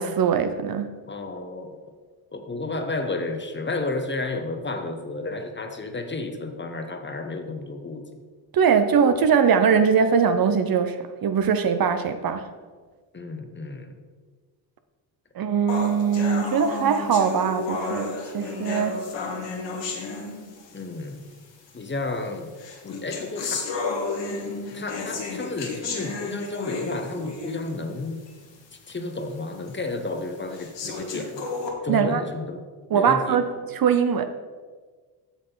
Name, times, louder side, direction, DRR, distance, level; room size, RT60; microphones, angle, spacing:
voice 1, 0.0-0.9 8.5-12.5 15.4-19.0 31.9-32.2 32.9-33.4 33.7-34.3, right 6 dB, 45° right, 9 dB, 0.7 m, -21 dB
voice 2, 1.1-1.7 2.3-8.2 13.1-14.0 20.7-21.2 21.7-22.6 22.8-23.7 24.7-28.2 28.9-31.5 31.8-32.6 32.9-33.4, left 2 dB, 20° left, 6 dB, 1.0 m, -32 dB
sound 1, 15.7-20.8 21.7-21.8 22.6-27.8 28.3-28.4 28.9-29.0 29.7-29.8 30.5-31.7, left 3 dB, 60° left, 1.6 m, -32 dB
8.1 x 6.4 x 3.9 m, 1.5 s
supercardioid pair, 70°, 49 cm